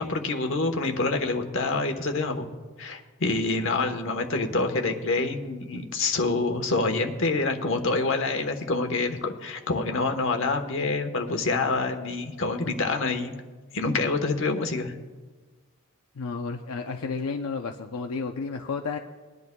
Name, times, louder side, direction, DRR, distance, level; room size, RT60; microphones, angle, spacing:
voice 1, 0.0-2.5 2.8-13.3 13.7-14.9, left 3 dB, 60° left, 5 dB, 1.1 m, -26 dB
voice 2, 16.2-19.0, left 4 dB, 80° left, 4 dB, 0.6 m, -32 dB
22.0 x 10.5 x 2.3 m, 1.4 s
head